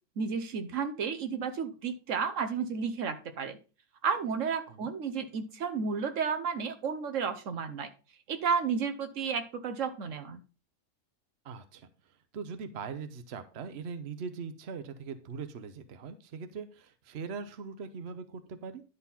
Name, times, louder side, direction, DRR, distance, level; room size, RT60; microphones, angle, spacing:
voice 1, 0.2-3.6 4.0-7.9 8.3-10.4, right 6 dB, 75° right, 8 dB, 1.3 m, -32 dB
voice 2, 11.4-11.9 12.3-18.8, right 5 dB, 60° right, 10 dB, 1.0 m, -41 dB
10.5 x 4.0 x 5.5 m, 0.34 s
omnidirectional pair, 1.3 m